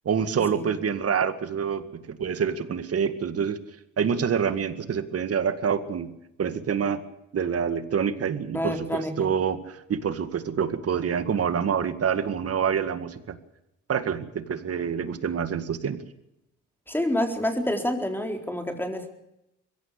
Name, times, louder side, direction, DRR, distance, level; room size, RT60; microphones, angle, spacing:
voice 1, 0.1-3.6 4.0-6.1 6.4-7.0 7.3-13.4 13.9-16.0, right 7 dB, 50° right, 12 dB, 2.0 m, -27 dB
voice 2, 8.5-9.3 16.9-19.1, left 1 dB, 5° left, 5 dB, 4.1 m, -28 dB
22.0 x 16.0 x 8.5 m, 0.86 s
cardioid pair, 90°, 30 cm